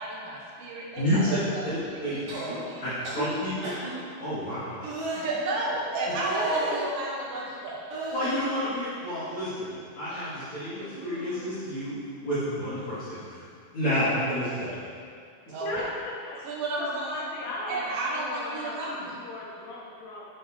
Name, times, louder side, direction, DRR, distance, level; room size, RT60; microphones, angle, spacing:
voice 1, 0.0-1.6 1.9-2.8 5.1-7.8 15.5-15.8 16.4-17.2 17.7-19.1, right 2 dB, 65° right, -4 dB, 1.8 m, -32 dB
voice 2, 1.0-1.3 1.6-2.2 2.8-3.7 4.2-4.8 8.1-9.7 10.0-12.0 12.2-13.4 13.7-14.8, equal, 40° left, -13 dB, 1.2 m, -29 dB
sound 1, 2.3-2.6 3.0-3.3 3.6-3.9 4.8-5.2 6.1-6.8 7.9-8.5 9.0-9.8 10.1-10.4 10.8-11.6 12.8-13.0, right 2 dB, 80° right, 3.4 m, -35 dB
voice 3, 7.2-8.1 15.6-16.4 16.8-20.3, left 2 dB, 70° left, -4 dB, 1.8 m, -37 dB
7.2 x 4.2 x 4.8 m, 2.2 s
omnidirectional pair, 3.7 m